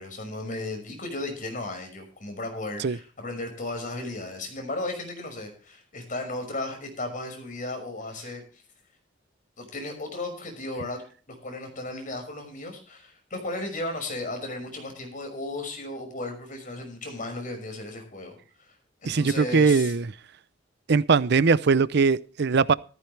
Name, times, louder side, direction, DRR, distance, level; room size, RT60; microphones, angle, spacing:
voice 1, 0.0-8.6 9.6-11.0 11.3-18.4 18.7-18.8 19.0-19.9, left 2 dB, 45° left, 5.7 m, -35 dB
voice 2, 19.1-20.1 20.9-22.7, right 5 dB, 60° right, 0.6 m, -21 dB
14.5 x 14.0 x 3.3 m
head